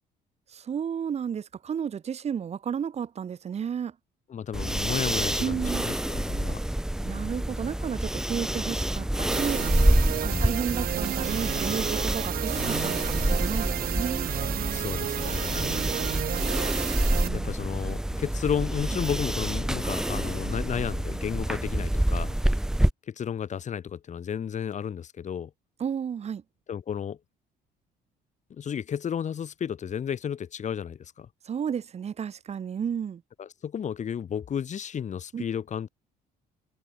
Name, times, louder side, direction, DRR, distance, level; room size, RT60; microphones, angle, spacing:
voice 1, 0.5-3.9 5.4-5.8 7.0-9.6 10.2-14.3 17.2-17.5 25.8-26.4 31.4-33.2 35.3-35.4, right 7 dB, 40° right, 1.4 m, -32 dB
voice 2, 4.3-6.6 10.3-10.6 14.7-15.9 17.3-22.4 23.1-25.5 26.7-27.2 28.5-31.3 33.4-35.9, left 8 dB, 45° left, 5.0 m, -33 dB
sound 1, 4.5-22.9, right 1 dB, 5° right, 0.5 m, -27 dB
sound 2, 9.3-17.3, right 12 dB, 60° right, 1.0 m, -32 dB
cardioid pair, 110°, 17 cm